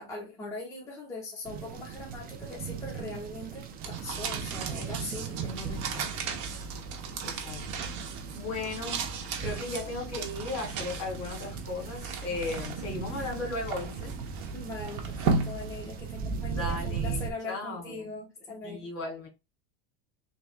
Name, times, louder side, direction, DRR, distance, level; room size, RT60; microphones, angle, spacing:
voice 1, 0.0-6.0 14.5-18.9, left 2 dB, 10° left, 1.0 m, -41 dB
sound 1, 1.4-17.3, right 6 dB, 25° right, 0.4 m, -39 dB
sound 2, 3.8-16.4, right 4 dB, 70° right, 1.0 m, -36 dB
voice 2, 7.2-7.7 8.3-9.0 9.4-14.1 16.5-17.9 18.6-19.3, left 3 dB, 45° left, 2.2 m, -36 dB
3.5 x 2.6 x 3.2 m
supercardioid pair, 145°, 35 cm